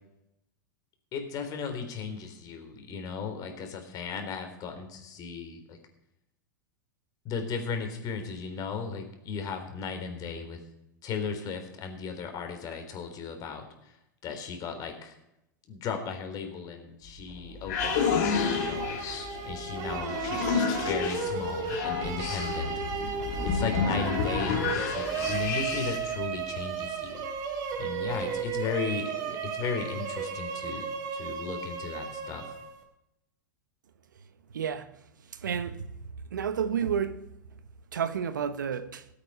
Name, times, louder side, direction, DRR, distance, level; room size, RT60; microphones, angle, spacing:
voice 1, 1.1-5.8 7.2-10.6 11.0-13.9 14.2-15.2 15.7-19.0 19.4-22.7 23.4-27.3 27.8-30.9 31.1-32.4, left 5 dB, 35° left, 3.7 m, -36 dB
sound 1, 17.1-26.1, left 6 dB, 55° left, 2.6 m, -31 dB
sound 2, 17.8-32.8, right 6 dB, 40° right, 3.7 m, -34 dB
voice 2, 34.5-35.0 35.3-35.9 36.3-37.3 37.9-39.1, right 7 dB, 75° right, 1.1 m, -31 dB
18.5 x 8.6 x 5.5 m
hypercardioid pair, 100°, 10 cm